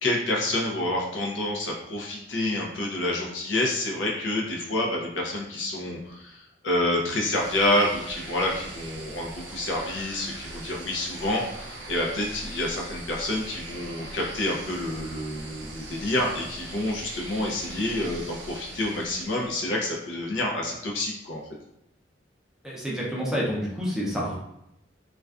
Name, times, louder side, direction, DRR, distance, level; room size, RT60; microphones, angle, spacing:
voice 1, 0.0-6.4 6.6-21.4, left 1 dB, 80° left, -1 dB, 0.5 m, -28 dB
sound 1, 7.0-19.8, right 2 dB, 75° right, 0.4 m, -41 dB
voice 2, 22.6-24.4, equal, 5° right, -5 dB, 0.5 m, -28 dB
2.3 x 2.2 x 2.3 m, 0.82 s
head